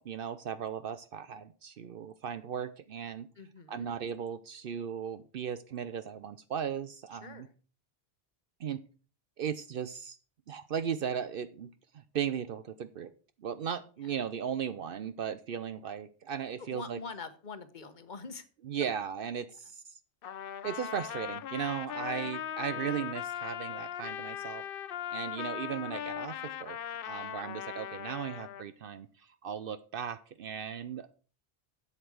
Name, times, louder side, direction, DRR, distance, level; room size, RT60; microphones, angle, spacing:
voice 1, 0.0-3.3 3.7-7.5 8.6-8.9 9.4-10.2 10.5-13.1 13.4-17.0 18.6-20.0 20.6-24.6 25.1-26.8 27.0-31.2, right 8 dB, 65° right, 13 dB, 0.8 m, -37 dB
voice 2, 3.4-3.9 7.2-7.5 14.0-14.1 16.6-18.4 22.0-22.3 22.7-23.1, left 4 dB, 50° left, 11 dB, 1.2 m, -45 dB
Trumpet, 20.2-28.7, left 10 dB, 65° left, 0.8 m, -39 dB
8.2 x 7.4 x 6.1 m, 0.38 s
omnidirectional pair, 1.0 m